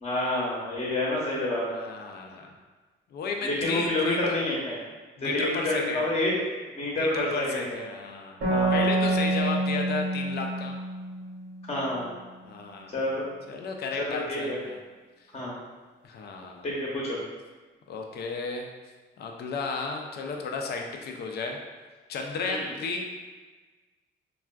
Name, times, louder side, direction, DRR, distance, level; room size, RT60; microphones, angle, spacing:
voice 1, 0.0-1.7 3.4-4.8 5.2-6.3 6.8-7.8 8.5-9.0 11.7-12.1 12.9-13.3 14.0-14.6 15.3-15.5 16.6-17.2 22.4-22.7, left 1 dB, 30° left, -4 dB, 0.8 m, -28 dB
voice 2, 1.6-2.5 3.1-4.4 5.2-6.0 7.0-8.4 8.7-10.7 12.4-12.9 13.5-14.8 16.0-16.7 17.9-18.7 19.2-21.6 22.1-23.1, left 3 dB, 55° left, 2 dB, 0.4 m, -33 dB
sound 1, 8.4-11.9, right 1 dB, 75° right, 1.1 m, -27 dB
3.4 x 2.3 x 2.2 m, 1.3 s
cardioid pair, 90°, 20 cm